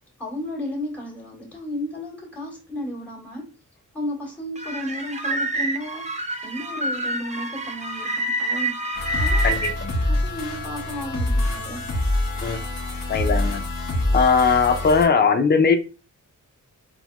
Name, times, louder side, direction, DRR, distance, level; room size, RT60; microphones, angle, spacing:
voice 1, 0.2-3.5 3.9-9.4 9.8-11.9, left 1 dB, 5° left, -4 dB, 1.6 m, -33 dB
sound 1, 4.6-9.7, right 1 dB, 25° right, 0.5 m, -27 dB
sound 2, 8.9-15.1, left 1 dB, 55° left, 1.1 m, -25 dB
voice 2, 9.4-9.9 12.4-12.6 13.1-13.6 14.1-15.8, left 5 dB, 35° left, 7 dB, 0.4 m, -19 dB
4.5 x 2.1 x 2.2 m, 0.33 s
wide cardioid pair, 145°, 31 cm